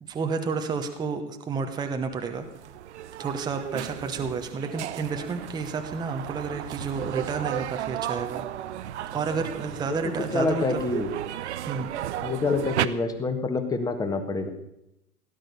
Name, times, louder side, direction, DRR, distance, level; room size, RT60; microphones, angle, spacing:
voice 1, 0.0-2.5 3.2-8.4 9.1-10.8 11.7-11.9, right 5 dB, 10° right, 6 dB, 1.0 m, -31 dB
sound 1, 2.4-12.9, right 12 dB, 45° right, 0.8 m, -34 dB
voice 2, 9.9-11.1 12.2-14.5, left 3 dB, 10° left, 8 dB, 1.4 m, -27 dB
17.0 x 10.5 x 6.8 m, 0.85 s
figure-of-eight pair, 120°, 48 cm